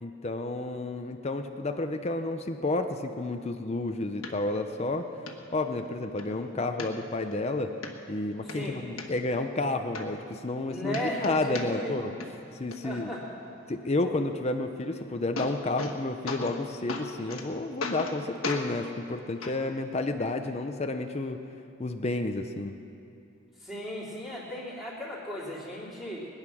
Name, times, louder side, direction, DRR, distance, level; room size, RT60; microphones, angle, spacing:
voice 1, 0.0-5.1 5.5-7.8 8.1-12.1 12.5-13.1 13.7-21.4 21.8-22.8, left 2 dB, 30° left, 6 dB, 0.6 m, -31 dB
sound 1, 4.2-4.3 4.8-4.9 5.3-5.4 5.8-6.3 6.8-7.4 7.8-7.9 8.3-9.1 9.6-9.7 9.9-10.6 10.9-11.9 12.2-12.8 14.8-14.9 15.1-16.0 16.3-16.6 16.9-17.4 17.8-18.2 18.4-18.7 19.4-19.5 20.4-20.5, left 3 dB, 85° left, 1.4 m, -36 dB
voice 2, 8.4-8.8 10.7-12.0 12.8-13.2 23.6-26.3, equal, ahead, -7 dB, 3.2 m, -36 dB
21.5 x 9.8 x 6.1 m, 2.7 s
head